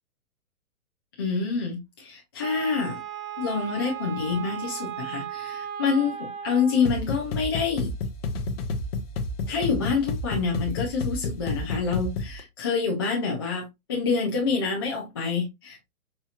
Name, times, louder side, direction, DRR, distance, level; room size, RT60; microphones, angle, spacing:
voice 1, 1.2-3.0 3.4-7.9 9.5-15.9, left 5 dB, 20° left, 0.3 m, -27 dB
Wind instrument woodwind instrument, 2.4-7.0, right 10 dB, 35° right, 0.7 m, -36 dB
sound 1, 6.8-12.4, left 3 dB, 45° left, 0.7 m, -31 dB
4.3 x 2.7 x 2.3 m
hypercardioid pair, 125°, 43 cm